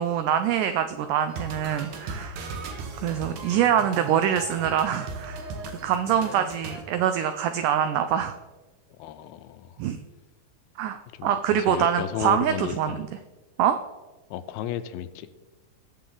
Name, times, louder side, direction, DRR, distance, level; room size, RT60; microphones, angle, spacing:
voice 1, 0.0-2.4 3.0-5.4 5.7-8.4 9.8-10.0 10.8-13.1 13.6-13.8, right 9 dB, 90° right, 9 dB, 1.8 m, -24 dB
sound 1, 1.3-6.8, right 3 dB, 65° right, 2.5 m, -37 dB
voice 2, 9.0-9.7 11.1-13.0 14.3-15.3, left 10 dB, 85° left, 12 dB, 2.5 m, -33 dB
19.5 x 7.0 x 3.8 m, 1.2 s
omnidirectional pair, 4.3 m